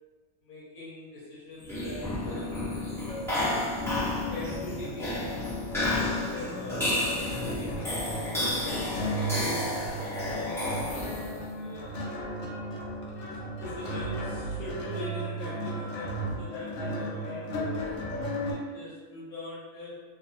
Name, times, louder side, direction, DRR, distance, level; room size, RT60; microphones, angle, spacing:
voice 1, 0.4-2.6 4.3-5.4 5.7-9.4 10.3-11.0 11.5-12.2 13.5-20.0, left 1 dB, 85° left, -7 dB, 1.1 m, -42 dB
sound 1, 1.6-11.5, left 1 dB, 5° left, 0.3 m, -31 dB
sound 2, 3.1-18.5, equal, 70° left, 0.9 m, -35 dB
2.8 x 2.6 x 2.7 m, 1.4 s
omnidirectional pair, 1.5 m